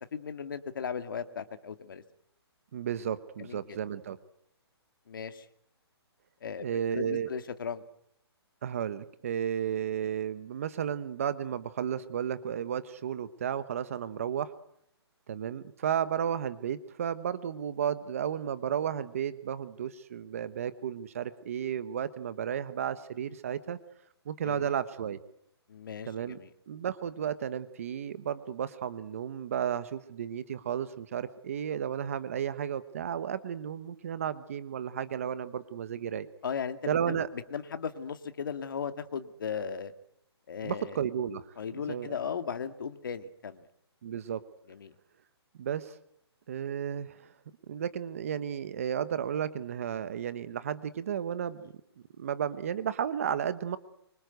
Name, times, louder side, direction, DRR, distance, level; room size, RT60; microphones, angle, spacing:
voice 1, 0.1-2.0 3.4-3.8 5.1-5.5 6.4-7.8 24.4-24.7 25.7-26.5 36.4-37.2 37.5-39.9 40.5-41.0 41.6-43.6 44.7-44.9, left 6 dB, 50° left, 9 dB, 2.2 m, -37 dB
voice 2, 2.7-4.2 6.6-7.3 8.6-14.5 15.3-23.8 24.3-25.2 26.1-26.4 26.7-36.3 36.9-37.3 40.6-41.4 41.9-42.2 44.0-44.4 45.6-45.9 46.5-47.3 47.7-51.6 52.2-53.8, right 9 dB, 30° right, 14 dB, 1.1 m, -33 dB
25.5 x 24.5 x 8.0 m, 0.74 s
hypercardioid pair, 175°, 14 cm